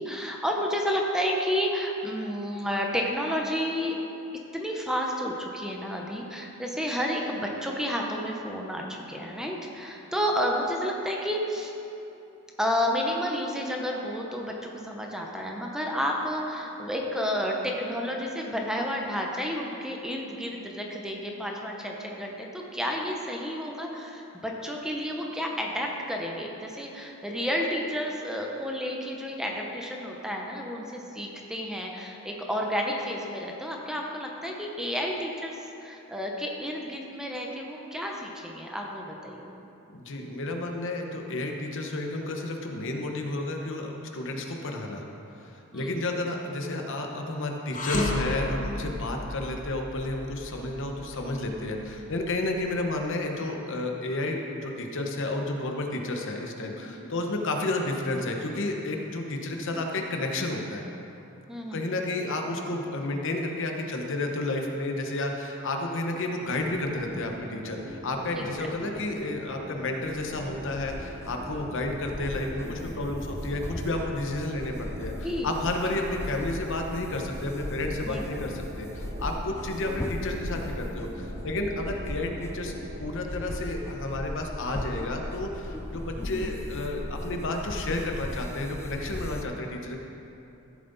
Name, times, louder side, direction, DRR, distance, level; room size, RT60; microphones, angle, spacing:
voice 1, 0.0-4.0 4.5-11.7 12.6-39.5 45.7-45.9 49.0-49.3 51.3-51.8 56.6-57.2 59.5-59.8 61.5-61.9 68.3-68.5 72.6-72.9 75.2-75.8 78.0-78.2 86.2-86.5, equal, 5° right, 0 dB, 0.9 m, -31 dB
voice 2, 39.9-45.1 45.3-60.8 61.7-82.7 83.0-90.0, left 2 dB, 60° left, 2 dB, 1.0 m, -31 dB
sound 1, 47.7-53.0, left 1 dB, 40° left, 1.0 m, -33 dB
sound 2, 66.5-83.2, right 1 dB, 55° right, 0.8 m, -43 dB
sound 3, 70.1-89.4, left 1 dB, 10° left, 0.4 m, -37 dB
14.0 x 7.4 x 4.1 m, 2.9 s
head